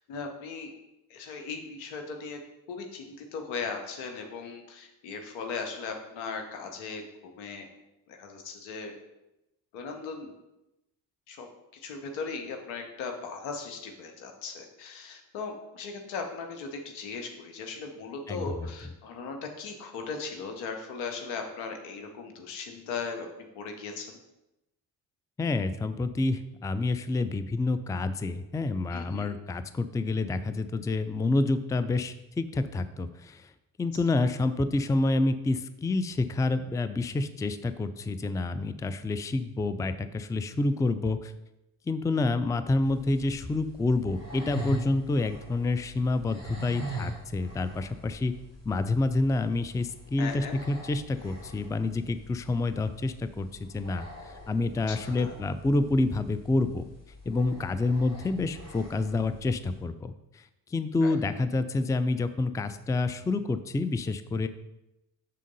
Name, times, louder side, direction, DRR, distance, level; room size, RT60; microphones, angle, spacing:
voice 1, 0.1-0.7 1.1-2.4 2.7-7.7 8.1-9.0 9.7-10.3 11.3-11.5 11.7-23.3 23.5-24.1 28.9-29.3 50.2-50.5 54.9-55.4 61.0-61.1, left 5 dB, 90° left, 4 dB, 1.0 m, -38 dB
voice 2, 18.3-18.7 25.4-33.5 33.8-41.3 41.9-48.4 48.7-56.9 57.3-64.5, left 2 dB, 10° left, 12 dB, 0.3 m, -28 dB
sound 1, 42.8-59.8, right 1 dB, 35° left, 2.3 m, -43 dB
6.7 x 3.7 x 5.4 m, 0.92 s
hypercardioid pair, 50°, 45 cm